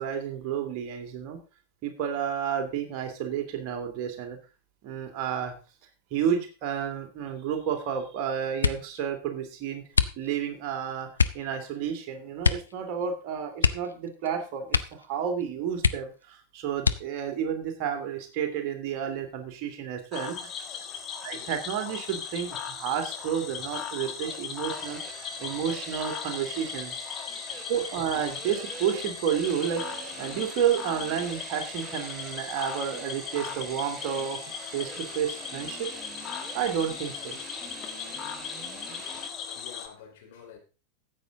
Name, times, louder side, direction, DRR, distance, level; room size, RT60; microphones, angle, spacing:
voice 1, 0.0-1.4 1.8-4.4 4.8-5.6 6.1-9.8 10.2-11.1 11.3-20.4 21.2-26.9 27.7-29.8 30.2-34.4 34.7-35.9 36.5-37.4, right 8 dB, 40° right, 2.7 m, -31 dB
sound 1, 8.6-9.0 9.9-10.6 11.1-11.5 12.4-12.8 13.0-13.1 13.6-14.3 14.7-15.1 15.4-15.5 15.8-16.3 16.8-17.3 18.1-18.7 19.1-19.4, left 5 dB, 75° left, 0.7 m, -26 dB
Cricket / Frog, 20.1-39.9, left 7 dB, 30° left, 1.7 m, -38 dB
sound 2, 24.7-39.3, right 3 dB, 20° right, 2.2 m, -43 dB
voice 2, 27.5-28.2 38.0-38.2 38.6-40.6, left 8 dB, 55° left, 4.1 m, -51 dB
14.0 x 8.3 x 3.8 m
figure-of-eight pair, 90°, 0 cm